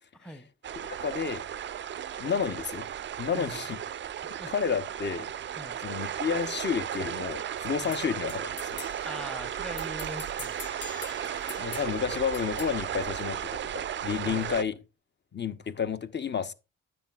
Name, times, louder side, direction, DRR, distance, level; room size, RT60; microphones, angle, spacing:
voice 1, 0.1-0.5 3.3-3.7 4.2-4.5 5.6-5.8 7.8-8.0 9.0-10.6 14.2-14.6, equal, 5° left, 0.8 m, -42 dB
sound 1, 0.6-14.6, right 9 dB, 40° right, 0.4 m, -35 dB
voice 2, 1.0-1.4 2.2-2.9 3.2-3.8 4.5-5.3 5.8-8.8 11.6-14.7 15.3-16.5, left 7 dB, 35° left, 0.7 m, -31 dB
sound 2, 7.9-13.9, left 4 dB, 50° left, 1.2 m, -45 dB
10.5 x 7.6 x 2.3 m
supercardioid pair, 60°, 31 cm